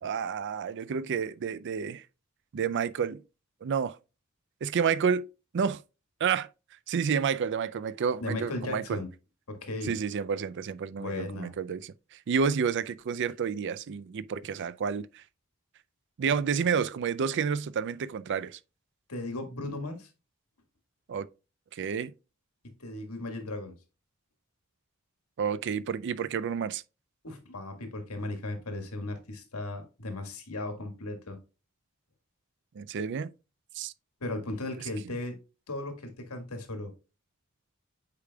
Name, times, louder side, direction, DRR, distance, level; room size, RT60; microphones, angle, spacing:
voice 1, 0.0-2.0 2.5-3.2 3.6-4.0 4.6-5.3 5.5-5.8 6.2-6.5 6.9-9.0 9.8-11.9 12.3-15.2 16.2-18.6 21.1-21.3 21.7-22.1 25.4-26.8 32.8-33.3 33.7-33.9, right 6 dB, 55° right, 0.4 m, -30 dB
voice 2, 8.2-9.1 9.5-10.0 11.0-11.5 19.1-20.1 22.8-23.7 27.2-31.4 34.2-35.4 35.7-36.9, left 2 dB, 85° left, 1.7 m, -36 dB
8.4 x 5.0 x 2.3 m
head